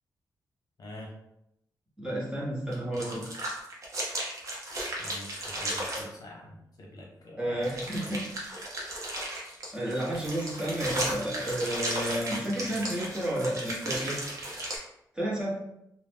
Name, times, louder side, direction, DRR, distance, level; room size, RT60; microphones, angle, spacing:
voice 1, 0.8-1.1 5.0-8.1 12.4-12.8, left 1 dB, 60° left, -2 dB, 0.7 m, -46 dB
voice 2, 2.0-3.2 7.4-8.2 9.7-14.2 15.1-15.5, right 1 dB, 10° right, -6 dB, 0.8 m, -31 dB
sound 1, 2.7-6.0 7.6-14.8, right 1 dB, 45° right, 0.7 m, -35 dB
2.5 x 2.0 x 3.3 m, 0.79 s
wide cardioid pair, 150°, 7 cm